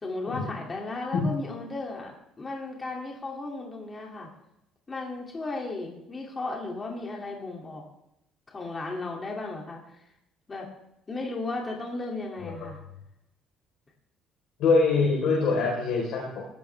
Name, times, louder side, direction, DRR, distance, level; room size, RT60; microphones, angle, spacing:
voice 1, 0.0-2.1 2.4-4.3 4.9-7.8 8.5-10.0 10.5-10.7 11.1-12.8, left 2 dB, 20° left, 0 dB, 2.7 m, -35 dB
voice 2, 14.6-16.4, left 4 dB, 60° left, -3 dB, 4.1 m, -24 dB
19.0 x 15.5 x 3.5 m, 0.83 s
cardioid pair, 175°, 0 cm